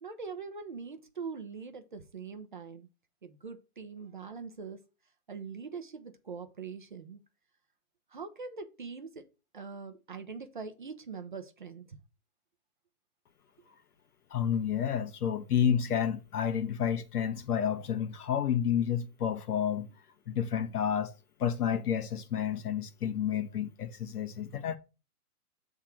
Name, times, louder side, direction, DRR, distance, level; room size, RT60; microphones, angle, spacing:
voice 1, 0.0-2.9 3.2-4.8 5.3-7.2 8.1-9.3 9.5-12.0, right 5 dB, 35° right, 0.6 m, -42 dB
voice 2, 14.3-19.9 20.3-21.1 21.4-24.8, left 8 dB, 75° left, 1.3 m, -30 dB
7.7 x 3.6 x 5.8 m
hypercardioid pair, 180°, 45 cm